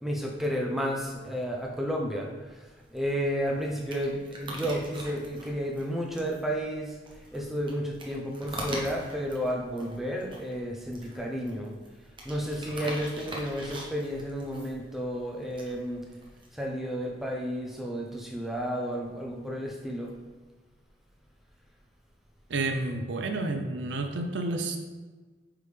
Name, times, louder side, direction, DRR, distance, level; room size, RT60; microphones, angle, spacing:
voice 1, 0.0-2.3 2.9-6.9 7.3-11.8 12.2-16.0 16.5-20.1, equal, ahead, -1 dB, 0.6 m, -32 dB
sound 1, 2.8-16.6, right 1 dB, 25° right, 0.9 m, -43 dB
voice 2, 22.5-24.8, right 2 dB, 75° right, 5 dB, 0.5 m, -30 dB
8.1 x 3.5 x 3.3 m, 1.3 s
head